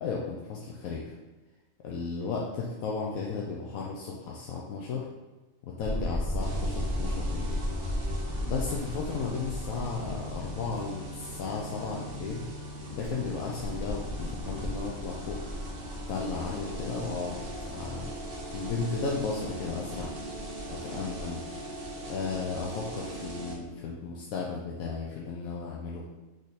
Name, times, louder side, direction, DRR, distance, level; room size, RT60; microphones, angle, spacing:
voice 1, 0.0-1.1 1.8-5.1 5.6-7.6 8.5-12.4 12.9-15.4 16.1-18.1 18.5-20.1 20.7-21.4 22.1-26.0, left 4 dB, 85° left, -3 dB, 1.1 m, -34 dB
sound 1, 5.8-10.8 11.3-11.4 12.7-21.3 22.0-22.1, equal, 40° left, 1.1 m, -36 dB
sound 2, 6.4-23.5, right 1 dB, 50° right, 0.9 m, -40 dB
3.9 x 3.2 x 4.1 m, 1.2 s
omnidirectional pair, 1.4 m